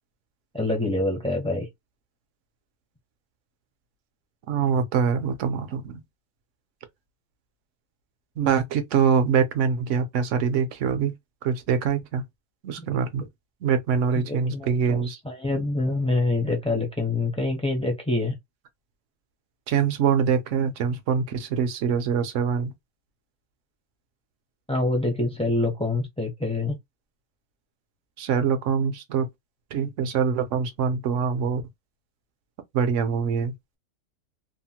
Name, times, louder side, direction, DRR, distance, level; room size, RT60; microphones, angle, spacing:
voice 1, 0.5-1.7 14.1-15.0 15.2-18.3 24.7-26.8, left 2 dB, 5° left, 0.4 m, -26 dB
voice 2, 4.5-6.0 8.4-11.1 11.4-12.2 12.6-13.3 13.6-15.2 19.7-22.7 28.2-29.3 29.7-31.6 32.7-33.8, right 6 dB, 65° right, 0.8 m, -24 dB
2.8 x 2.0 x 2.8 m
omnidirectional pair, 1.6 m